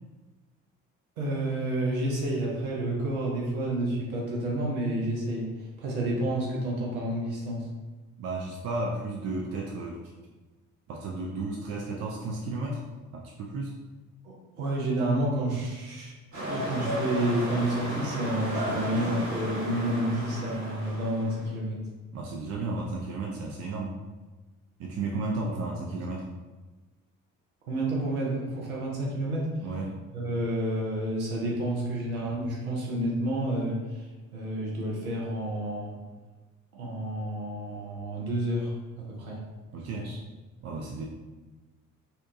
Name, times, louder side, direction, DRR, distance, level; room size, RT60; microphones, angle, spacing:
voice 1, 1.2-5.5 5.8-7.7 14.2-16.1 16.5-21.8 25.8-25.9 27.7-29.5 30.1-34.1 34.3-36.0 36.7-39.4 39.9-40.2, right 1 dB, 80° right, -4 dB, 0.6 m, -30 dB
voice 2, 8.2-10.0 10.9-12.8 13.1-13.7 22.1-24.0 24.8-26.3 29.6-30.0 39.7-40.1 40.6-41.1, right 2 dB, 35° right, -1 dB, 0.4 m, -33 dB
sound 1, 16.3-21.4, equal, 55° right, 1.5 m, -33 dB
2.7 x 2.2 x 2.5 m, 1.2 s
figure-of-eight pair, 45°, 42 cm